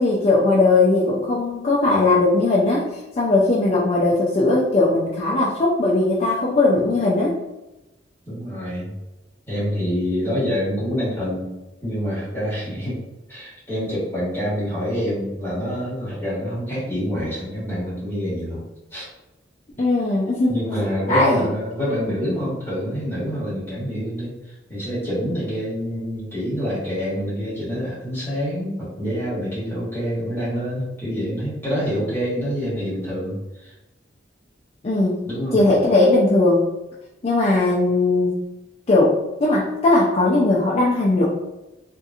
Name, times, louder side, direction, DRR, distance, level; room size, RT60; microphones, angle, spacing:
voice 1, 0.0-7.3 19.8-20.5 21.1-21.5 34.8-36.7 37.2-38.4 38.9-41.2, left 2 dB, 35° left, -6 dB, 0.4 m, -19 dB
voice 2, 8.3-8.9 9.5-11.5 11.8-13.0 13.3-18.6 18.9-19.1 20.5-33.7 35.3-35.7, equal, 15° left, -10 dB, 1.2 m, -26 dB
2.8 x 2.6 x 2.3 m, 0.98 s
head